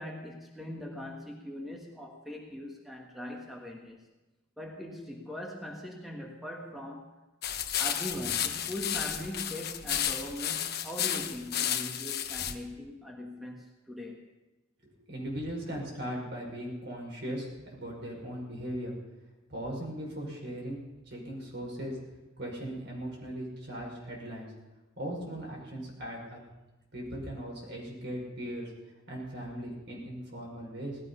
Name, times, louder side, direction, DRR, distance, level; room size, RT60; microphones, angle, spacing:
voice 1, 0.0-4.0 4.6-7.2 7.8-14.3, left 1 dB, ahead, 0 dB, 1.5 m, -41 dB
sound 1, 7.4-12.5, left 10 dB, 55° left, 1.0 m, -32 dB
voice 2, 14.8-18.9 19.5-20.8 21.1-22.0 22.4-24.5 25.0-26.4 26.9-28.7 29.1-31.0, equal, 60° right, -2 dB, 5.6 m, -38 dB
18.0 x 13.0 x 5.6 m, 1.0 s
head